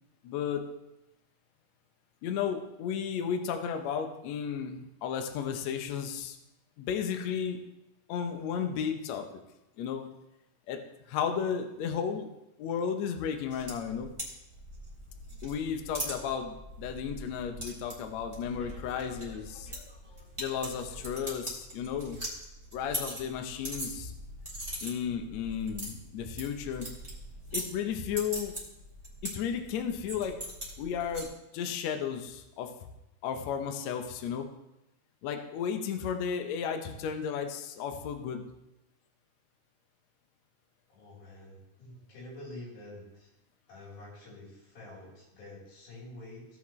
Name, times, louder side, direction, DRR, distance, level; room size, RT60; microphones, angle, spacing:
voice 1, 0.2-0.6 2.2-6.4 6.8-7.6 8.1-9.2 9.8-10.1 10.7-10.8 11.1-12.3 12.6-14.1 15.4-19.7 20.4-22.2 22.7-24.1 24.8-26.9 27.5-28.5 29.2-30.3 30.8-32.7 33.2-34.4 35.2-38.4, left 7 dB, 70° left, 5 dB, 1.7 m, -33 dB
sound 1, 13.5-31.3, equal, 10° right, 2.8 m, -42 dB
voice 2, 40.9-43.3 43.7-46.5, left 1 dB, 90° left, -6 dB, 5.4 m, -47 dB
17.0 x 6.0 x 3.2 m, 0.92 s
omnidirectional pair, 4.0 m